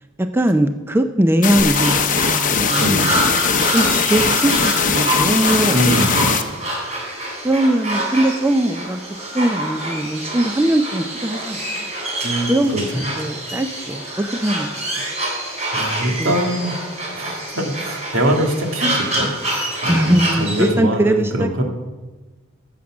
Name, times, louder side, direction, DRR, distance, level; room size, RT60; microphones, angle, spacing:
voice 1, 0.2-3.2 3.7-5.9 7.4-9.0 9.3-11.9 12.5-14.7 15.0-15.1 16.2-16.4 19.9-21.5, right 1 dB, 10° right, 7 dB, 0.4 m, -20 dB
sound 1, 1.4-6.4, left 6 dB, 40° left, 0.8 m, -19 dB
sound 2, 1.6-20.7, right 1 dB, 35° right, 3.8 m, -26 dB
voice 2, 2.7-3.2 5.7-6.2 12.2-13.1 15.7-16.7 17.1-21.6, equal, 75° right, 2 dB, 2.0 m, -23 dB
14.5 x 7.3 x 6.0 m, 1.2 s
head